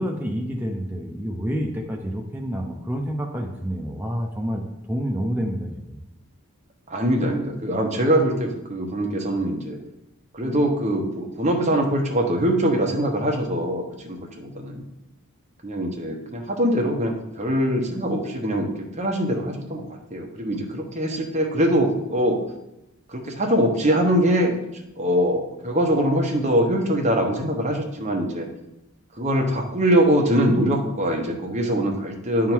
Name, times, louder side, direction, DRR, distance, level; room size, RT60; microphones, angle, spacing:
voice 1, 0.0-4.6 4.9-6.0, equal, 10° right, 0 dB, 0.7 m, -28 dB
voice 2, 6.9-9.8 10.3-14.9 15.6-22.4 23.1-24.6 25.0-28.5 29.1-32.5, equal, 30° right, 2 dB, 1.0 m, -23 dB
9.8 x 3.7 x 4.6 m, 0.87 s
head